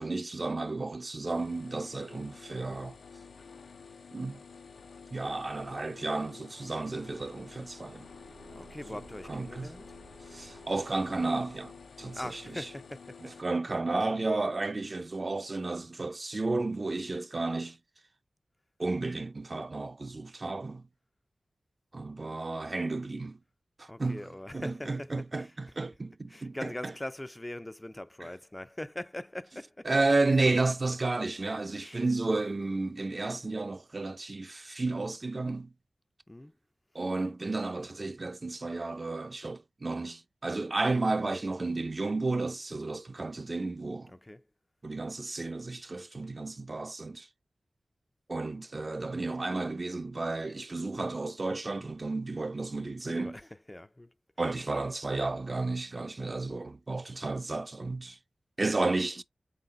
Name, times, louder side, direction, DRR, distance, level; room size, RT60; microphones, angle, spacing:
voice 1, 0.0-3.0 4.1-4.4 5.1-8.1 8.9-9.0 9.3-9.7 10.3-12.7 13.2-17.8 18.8-20.8 21.9-23.4 23.8-26.9 28.2-28.3 29.8-35.7 36.9-44.1 44.8-47.3 48.3-53.4 54.4-58.2 58.6-59.2, right 3 dB, 45° right, 0.5 m, -32 dB
sound 1, 1.3-13.4, left 5 dB, 90° left, 0.4 m, -50 dB
Car / Engine, 7.6-12.1, right 3 dB, 80° right, 0.7 m, -56 dB
voice 2, 8.5-9.9 12.1-13.3 14.1-14.2 23.9-25.1 25.4-25.5 26.3-29.9 31.8-32.0 36.3-36.5 44.2-44.4 53.0-54.1, left 1 dB, 20° left, 0.3 m, -42 dB
3.9 x 3.9 x 2.4 m
wide cardioid pair, 65°, 0 cm